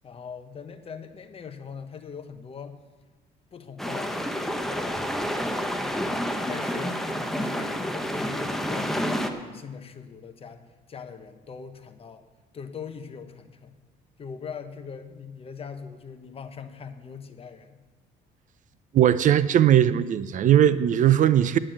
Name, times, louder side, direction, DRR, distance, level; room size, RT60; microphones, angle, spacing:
voice 1, 0.0-2.8 3.5-4.2 4.7-5.3 5.8-6.2 6.5-7.0 7.3-12.3 12.5-13.8 14.2-17.7, left 6 dB, 35° left, 1.0 m, -41 dB
sound 1, 3.8-9.3, equal, ahead, 0.9 m, -29 dB
voice 2, 18.9-21.6, right 10 dB, 50° right, 0.5 m, -19 dB
8.9 x 8.6 x 7.7 m
cardioid pair, 110°, 17 cm